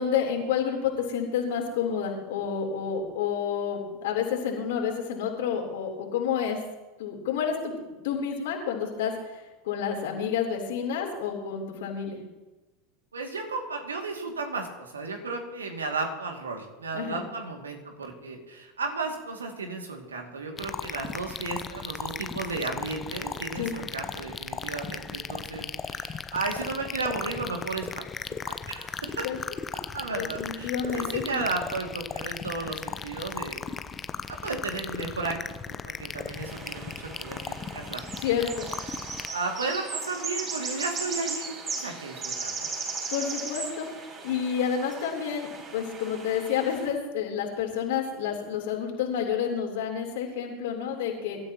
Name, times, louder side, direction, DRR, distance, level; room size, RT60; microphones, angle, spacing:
voice 1, 0.0-6.6 7.0-7.7 8.0-12.2 16.9-17.2 23.6-23.7 29.2-29.4 30.1-31.4 38.2-38.7 43.1-43.9 44.2-51.4, left 7 dB, 65° left, 0 dB, 3.6 m, -29 dB
voice 2, 13.1-28.1 28.4-29.3 29.9-33.8 34.3-35.4 35.7-38.0 39.3-42.7, right 3 dB, 80° right, 2 dB, 2.4 m, -34 dB
sound 1, 20.6-39.3, left 6 dB, 25° left, 0.8 m, -37 dB
sound 2, 36.3-46.9, right 4 dB, 35° right, 6.0 m, -37 dB
25.0 x 13.5 x 3.0 m, 1.1 s
figure-of-eight pair, 80°, 0 cm